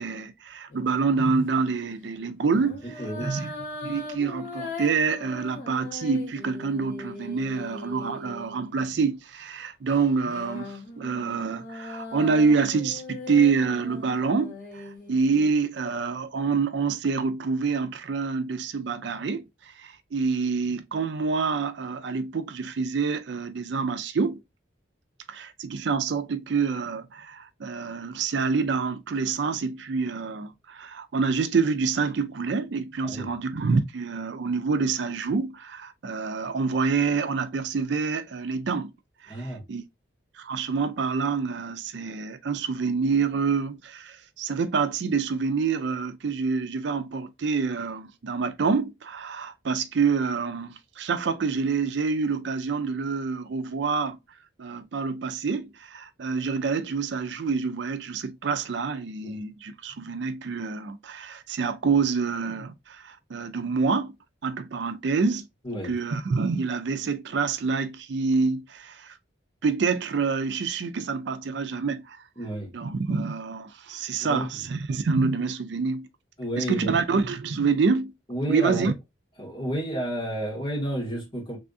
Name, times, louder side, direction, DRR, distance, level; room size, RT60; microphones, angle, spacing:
voice 1, 0.0-2.8 3.2-3.5 3.8-24.4 25.3-38.9 39.2-39.8 40.4-54.2 54.6-64.2 64.4-65.5 65.8-69.2 69.6-72.2 72.7-76.1 76.6-78.1 78.5-78.9, right 5 dB, 65° right, 0.4 m, -27 dB
sound 1, 0.7-1.0 2.4-9.0 9.9-15.5, left 2 dB, 45° left, 1.6 m, -40 dB
voice 2, 2.8-3.3 33.0-33.3 39.3-39.6 59.2-59.4 65.6-66.0 72.4-72.7 74.2-74.5 76.4-77.0 78.3-78.9 79.4-81.6, right 1 dB, 25° left, 1.9 m, -31 dB
3.5 x 3.4 x 2.6 m
head